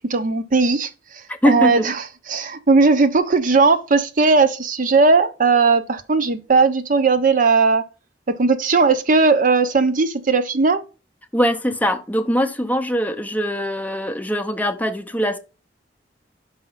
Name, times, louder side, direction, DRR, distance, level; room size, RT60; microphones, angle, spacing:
voice 1, 0.1-2.0 2.3-7.8 8.4-10.8, right 4 dB, 50° right, 0.7 m, -17 dB
voice 2, 1.4-1.8 11.3-15.4, equal, 10° left, 0.6 m, -21 dB
5.6 x 4.8 x 5.6 m
head